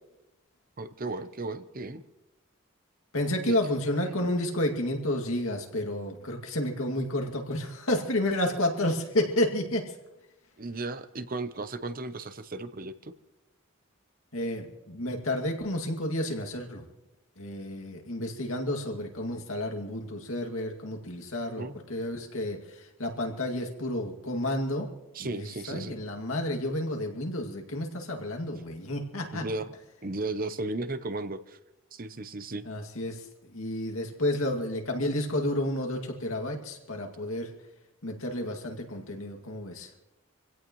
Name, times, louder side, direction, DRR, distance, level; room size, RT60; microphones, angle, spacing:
voice 1, 0.8-2.0 3.5-3.6 10.6-13.1 21.5-21.7 25.1-26.0 29.3-29.7 30.0-31.6 31.9-32.7, right 2 dB, 40° right, 11 dB, 0.7 m, -35 dB
voice 2, 3.1-9.9 14.3-16.8 17.4-24.9 25.2-29.5 32.6-33.2 33.5-37.5 38.0-39.9, left 1 dB, 80° left, 3 dB, 2.3 m, -31 dB
25.5 x 17.0 x 3.1 m, 0.96 s
head